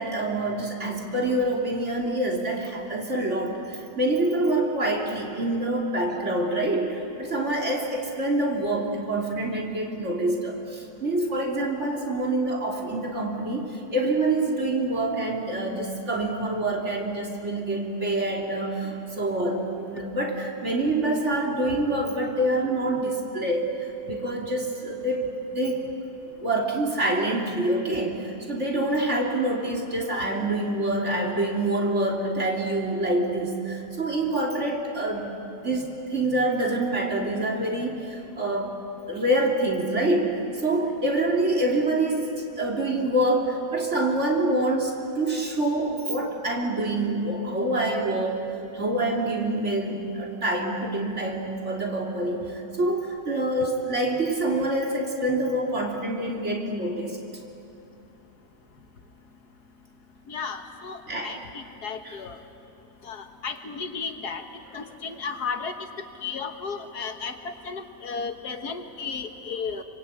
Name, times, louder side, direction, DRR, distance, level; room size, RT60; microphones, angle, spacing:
voice 1, 0.0-23.7 24.0-25.3 25.5-25.8 26.4-35.3 35.6-38.8 39.1-42.3 42.6-57.2 61.1-61.4 62.0-62.2, right 1 dB, 45° right, -1 dB, 3.5 m, -26 dB
voice 2, 60.3-61.0 61.2-62.4 63.1-64.4 64.7-65.7 66.2-69.8, left 5 dB, 75° left, 6 dB, 1.9 m, -34 dB
26.5 x 24.5 x 8.8 m, 2.8 s
omnidirectional pair, 1.7 m